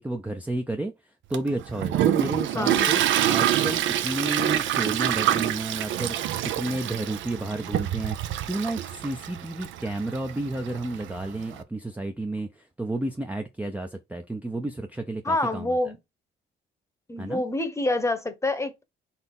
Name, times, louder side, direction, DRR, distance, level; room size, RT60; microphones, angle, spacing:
voice 1, 0.0-3.0 3.3-6.2 6.4-15.8 17.2-17.4, right 2 dB, 5° right, 0.5 m, -31 dB
Toilet flush, 1.3-11.6, right 11 dB, 75° right, 0.5 m, -26 dB
voice 2, 2.5-2.9 15.2-16.0 17.1-18.8, left 2 dB, 15° left, 0.9 m, -27 dB
4.1 x 2.8 x 3.7 m
cardioid pair, 90°, 20 cm